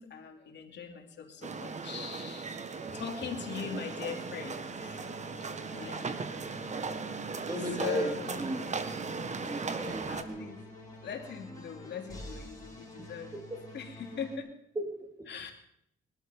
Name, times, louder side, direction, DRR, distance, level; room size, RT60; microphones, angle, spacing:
voice 1, 0.0-5.1 5.7-6.1 7.8-8.5 10.1-10.6 11.0-13.4 13.7-14.5 15.3-15.5, left 7 dB, 60° left, 3 dB, 2.9 m, -41 dB
sound 1, 1.4-10.2, right 4 dB, 35° right, 1.4 m, -38 dB
sound 2, 2.8-14.4, left 1 dB, 20° left, 5.3 m, -49 dB
voice 2, 7.5-8.6 9.4-10.6 13.0-13.1 13.3-13.7 14.8-15.3, right 1 dB, 20° right, 4 dB, 3.5 m, -36 dB
21.0 x 12.5 x 5.3 m, 0.74 s
cardioid pair, 90°, 20 cm